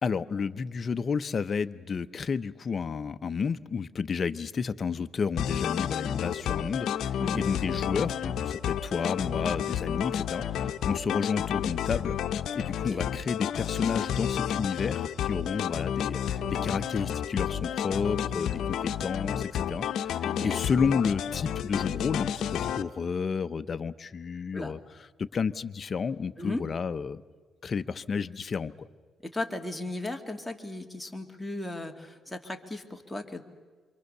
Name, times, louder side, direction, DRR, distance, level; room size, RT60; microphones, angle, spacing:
voice 1, 0.0-12.2 12.5-27.2 27.6-28.9, left 5 dB, 40° left, 12 dB, 0.8 m, -31 dB
sound 1, 5.4-22.8, left 9 dB, 75° left, 0.9 m, -31 dB
voice 2, 20.2-20.6 24.5-24.7 26.4-26.6 29.2-33.4, left 2 dB, 5° left, 2 dB, 2.5 m, -36 dB
27.5 x 24.5 x 6.8 m, 1.4 s
cardioid pair, 90°, 0 cm